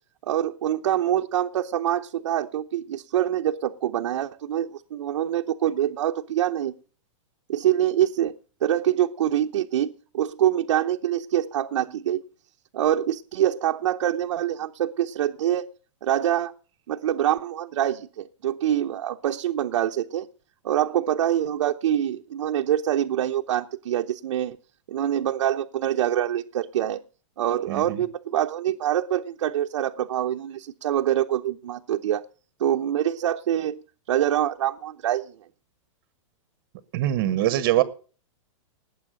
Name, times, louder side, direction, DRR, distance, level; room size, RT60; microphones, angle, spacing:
voice 1, 0.2-6.7 7.5-8.3 8.6-9.9 10.1-12.2 12.7-15.7 16.0-16.5 16.9-20.3 20.6-24.6 24.9-27.0 27.4-32.2 32.6-35.3, right 11 dB, 65° right, 3 dB, 0.8 m, -25 dB
voice 2, 27.7-28.0 36.9-37.8, right 13 dB, 35° right, 14 dB, 1.0 m, -23 dB
19.0 x 8.4 x 6.4 m, 0.40 s
supercardioid pair, 170°, 17 cm